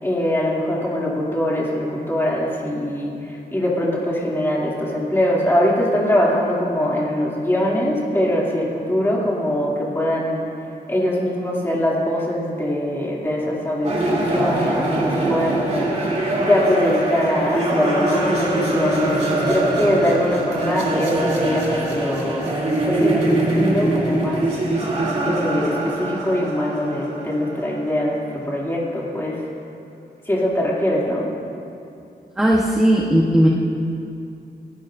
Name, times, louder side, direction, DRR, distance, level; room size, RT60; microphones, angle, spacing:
voice 1, 0.0-10.4 10.9-16.1 16.4-22.5 22.9-24.4 25.2-29.4 30.3-31.3, left 1 dB, 15° left, -5 dB, 2.5 m, -22 dB
sound 1, 13.8-28.0, right 2 dB, 40° right, 2.8 m, -22 dB
voice 2, 32.4-33.5, right 1 dB, 5° right, -3 dB, 1.0 m, -16 dB
28.5 x 11.5 x 2.6 m, 2.6 s
wide cardioid pair, 170°, 18 cm